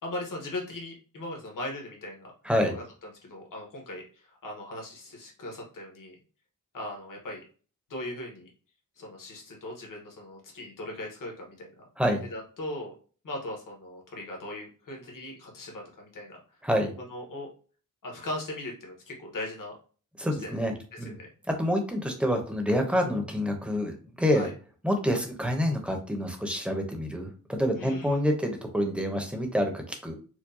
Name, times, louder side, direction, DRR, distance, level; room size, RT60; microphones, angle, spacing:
voice 1, 0.0-2.3 2.6-6.2 6.7-7.4 7.9-8.5 9.0-11.7 12.3-12.9 13.2-16.4 17.0-17.5 18.0-19.7 20.4-20.6 21.0-21.3 24.3-24.5 27.7-28.2, left 1 dB, 70° left, 0 dB, 1.2 m, -39 dB
voice 2, 2.4-2.8 12.0-12.2 16.6-16.9 20.2-21.2 21.6-24.5 24.8-30.1, equal, 5° right, 3 dB, 0.7 m, -27 dB
4.6 x 2.2 x 2.6 m, 0.39 s
wide cardioid pair, 135°, 34 cm